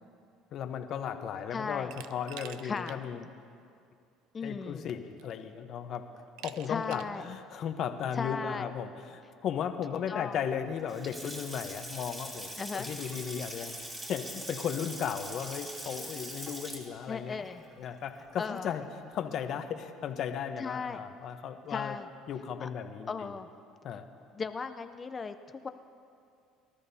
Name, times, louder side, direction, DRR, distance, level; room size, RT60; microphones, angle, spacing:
voice 1, 0.5-3.2 4.4-12.5 12.7-17.5 17.8-18.8 19.1-21.9 22.3-23.3 23.8-24.1, left 8 dB, 55° left, 7 dB, 1.0 m, -36 dB
voice 2, 1.5-1.9 2.6-3.0 4.3-4.8 6.7-7.3 8.2-8.7 10.1-10.4 12.6-12.9 17.1-17.6 18.4-18.7 20.6-21.0 21.7-22.1 22.6-22.7 23.1-23.5 24.4-25.7, left 5 dB, 25° left, 9 dB, 0.6 m, -36 dB
Glass, 1.9-3.0 3.4-3.5 4.6-4.7 5.2-5.6 6.4-7.2, right 12 dB, 75° right, 0.5 m, -47 dB
Water tap faucet / Sink (filling or washing) / Splash splatter, 10.8-18.8, right 1 dB, 15° right, 2.9 m, -43 dB
23.5 x 13.5 x 2.8 m, 2.4 s
supercardioid pair, 105°, 0 cm